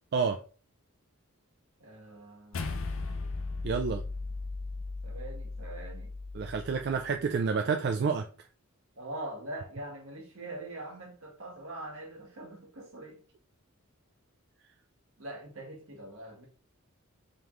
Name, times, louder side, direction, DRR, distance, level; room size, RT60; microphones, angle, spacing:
voice 1, 1.8-2.7 5.0-6.1 9.0-13.2 15.2-16.5, right 1 dB, 80° right, 0 dB, 1.5 m, -43 dB
sound 1, 2.5-7.1, left 3 dB, 65° left, 0.5 m, -37 dB
voice 2, 3.6-4.0 6.3-8.2, right 5 dB, 50° right, 5 dB, 0.3 m, -29 dB
3.6 x 3.5 x 3.0 m, 0.38 s
head